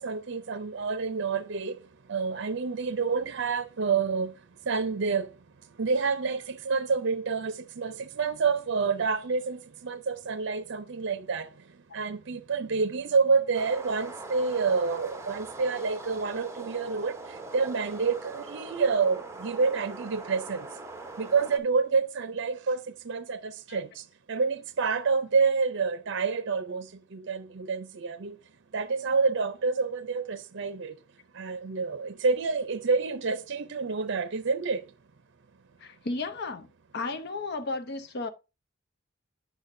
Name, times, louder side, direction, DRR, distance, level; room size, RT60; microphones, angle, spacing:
voice 1, 0.0-1.8 2.1-4.3 4.7-5.3 5.8-11.5 11.9-17.2 17.5-20.7 21.2-22.8 23.0-23.9 24.3-26.9 27.1-28.4 28.7-31.0 31.4-34.8, right 4 dB, 60° right, 0.6 m, -28 dB
sound 1, 13.5-21.6, right 2 dB, 15° right, 0.9 m, -42 dB
voice 2, 35.8-38.3, left 3 dB, 50° left, 0.8 m, -34 dB
8.3 x 6.3 x 2.5 m
head